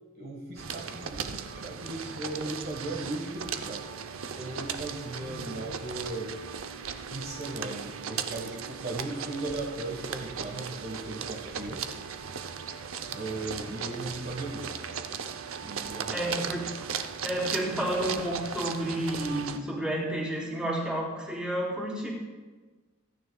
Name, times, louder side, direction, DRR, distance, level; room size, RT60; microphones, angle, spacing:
voice 1, 0.1-3.9 4.3-6.4 7.1-11.8 13.1-14.7 15.6-16.2 16.8-17.1, right 2 dB, 45° right, 0 dB, 1.4 m, -37 dB
sound 1, 0.6-19.6, right 6 dB, 80° right, 0.7 m, -37 dB
voice 2, 16.1-16.7 17.2-22.1, right 1 dB, 5° right, -5 dB, 3.4 m, -31 dB
25.5 x 9.7 x 2.3 m, 1.3 s
head